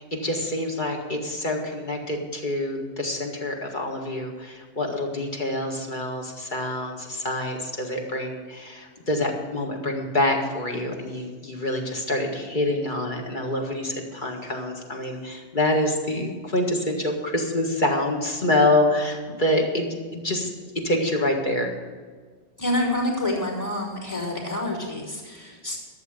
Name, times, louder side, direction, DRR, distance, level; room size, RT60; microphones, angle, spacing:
voice 1, 0.0-20.5 20.8-21.7, left 1 dB, 45° left, 1 dB, 1.9 m, -26 dB
voice 2, 22.6-25.8, left 1 dB, 20° left, -5 dB, 4.0 m, -27 dB
12.5 x 7.1 x 8.1 m, 1.5 s
omnidirectional pair, 1.1 m